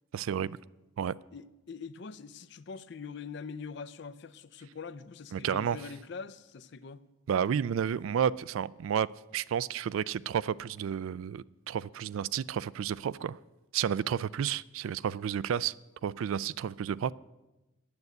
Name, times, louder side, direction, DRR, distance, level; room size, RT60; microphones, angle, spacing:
voice 1, 0.1-0.6 1.0-1.1 5.3-5.8 7.3-9.1 9.3-13.4 13.7-15.7 16.0-17.1, right 8 dB, 80° right, 0.3 m, -31 dB
voice 2, 1.3-7.1, left 5 dB, 55° left, 0.5 m, -43 dB
9.7 x 7.9 x 8.1 m
head